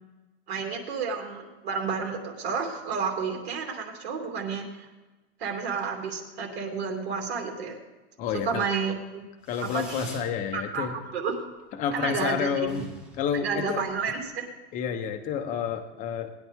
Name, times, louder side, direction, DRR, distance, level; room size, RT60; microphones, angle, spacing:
voice 1, 0.5-4.9 5.4-7.8 8.4-9.2 9.6-10.0 10.5-11.5 11.9-12.8 13.4-14.5, right 5 dB, 55° right, 1 dB, 2.7 m, -31 dB
voice 2, 8.2-8.7 9.5-10.9 11.7-12.9 13.2-13.8 14.7-16.3, left 7 dB, 20° left, 6 dB, 1.0 m, -29 dB
Fireworks, 9.4-10.3 10.7-11.3 11.5-11.6 11.9-12.0 12.2-12.3 12.6-14.2, right 1 dB, 5° right, 1.5 m, -46 dB
20.0 x 10.0 x 3.7 m, 1.2 s
supercardioid pair, 170°, 36 cm